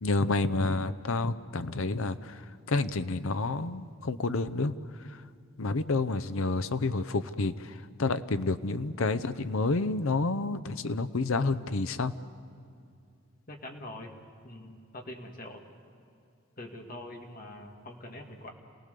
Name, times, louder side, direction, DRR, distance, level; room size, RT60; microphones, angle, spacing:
voice 1, 0.0-4.7 5.1-5.2 5.6-12.1, left 3 dB, 75° left, 12 dB, 0.7 m, -29 dB
voice 2, 13.5-14.1 14.4-15.6 16.6-18.5, left 1 dB, 40° left, 2 dB, 2.1 m, -44 dB
28.0 x 18.0 x 6.8 m, 2.4 s
head